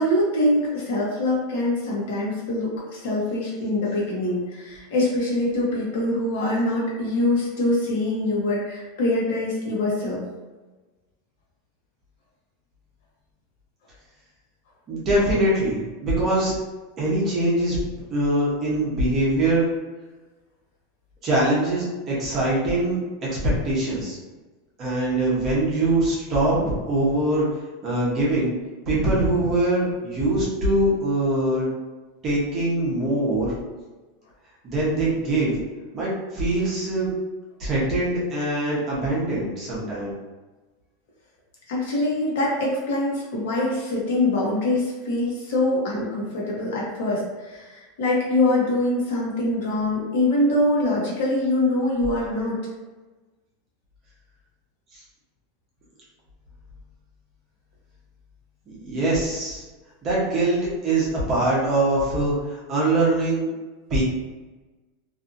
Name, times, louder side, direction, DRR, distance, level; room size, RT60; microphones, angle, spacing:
voice 1, 0.0-10.2 41.7-52.6, left 1 dB, 60° left, -4 dB, 1.0 m, -24 dB
voice 2, 14.9-16.5 17.0-17.8 18.1-19.7 21.2-24.2 24.8-27.5 27.8-28.5 28.9-31.7 32.2-33.5 34.6-35.5 35.9-37.1 37.6-40.1 54.9-55.0 58.8-59.6 60.0-63.5 63.9-64.0, right 1 dB, 25° right, -6 dB, 0.8 m, -23 dB
2.6 x 2.5 x 2.5 m, 1.2 s
supercardioid pair, 175°, 0 cm